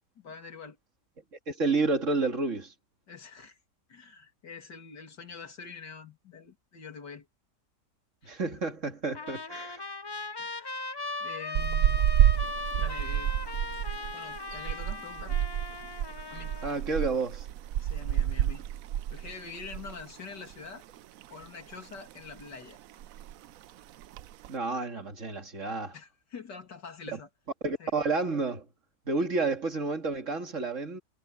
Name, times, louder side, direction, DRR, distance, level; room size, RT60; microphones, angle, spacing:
voice 1, 0.2-0.8 3.1-3.6 3.9-7.3 8.2-8.4 10.4-10.8 11.2-12.0 12.8-13.3 14.1-15.4 16.3-16.5 17.8-18.7 19.1-20.8 21.3-22.8 25.9-27.3 27.8-27.9, left 5 dB, 90° left, 3.3 m, -45 dB
voice 2, 1.5-2.7 8.3-9.8 16.6-17.5 24.5-26.0 27.6-28.6 29.1-31.0, right 3 dB, 45° right, 2.4 m, -30 dB
Trumpet, 9.1-16.8, left 3 dB, 35° left, 0.4 m, -38 dB
sound 1, 11.6-20.1 20.3-20.5 20.9-21.8 22.1-22.5 22.7-22.8 23.0-23.5 24.0-24.5, right 11 dB, 70° right, 0.9 m, -29 dB
omnidirectional pair, 1.8 m